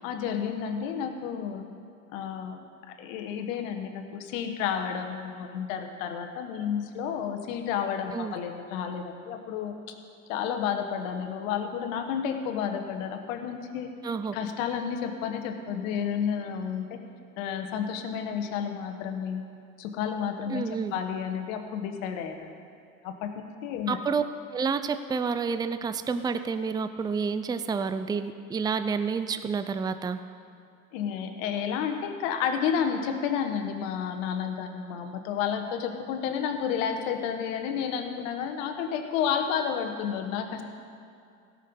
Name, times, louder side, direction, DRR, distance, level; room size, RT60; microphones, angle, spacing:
voice 1, 0.0-1.6 2.1-9.9 10.3-13.9 14.3-17.0 17.4-19.4 19.8-22.5 23.0-24.0 30.9-40.6, left 7 dB, 70° left, 6 dB, 1.3 m, -31 dB
voice 2, 14.0-14.3 20.5-20.9 23.9-24.2 24.5-30.2, right 5 dB, 10° right, 11 dB, 0.5 m, -29 dB
17.0 x 6.5 x 5.3 m, 2.5 s
hypercardioid pair, 75°, 41 cm